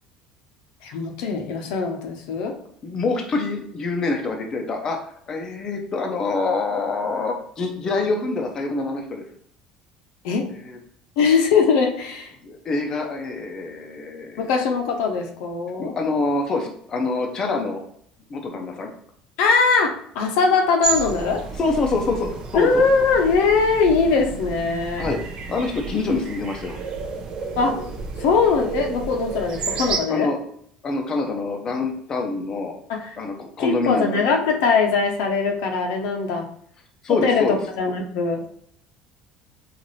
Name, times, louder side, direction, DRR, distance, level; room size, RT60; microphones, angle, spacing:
voice 1, 0.8-2.6 10.2-10.5 11.2-12.3 14.4-16.0 19.4-21.4 22.5-25.0 27.6-27.8 28.2-30.3 32.9-33.2 33.6-36.5 37.1-38.4, left 5 dB, 75° left, 3 dB, 0.6 m, -21 dB
voice 2, 2.8-5.0 5.3-9.2 10.6-10.8 12.4-14.5 15.8-17.8 18.3-18.9 21.6-22.8 25.0-25.2 25.5-26.8 30.1-30.4 30.8-32.7 33.2-34.2 37.0-37.6, left 3 dB, 25° left, 2 dB, 0.5 m, -25 dB
sound 1, 20.8-30.0, right 5 dB, 40° right, 0.6 m, -31 dB
4.0 x 2.5 x 3.1 m, 0.65 s
cardioid pair, 160°, 2 cm